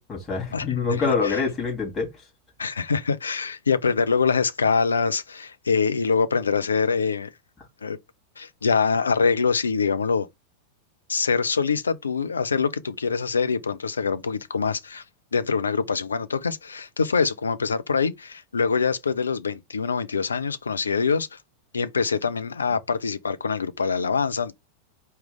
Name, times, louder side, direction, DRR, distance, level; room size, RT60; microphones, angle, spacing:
voice 1, 0.0-2.1, left 5 dB, 20° left, 3.3 m, -25 dB
voice 2, 0.5-1.4 2.6-7.3 7.8-8.0 8.4-10.3 11.1-15.0 15.3-21.4 21.7-24.5, left 5 dB, 75° left, 0.5 m, -24 dB
4.6 x 3.2 x 3.6 m
figure-of-eight pair, 90°, 0 cm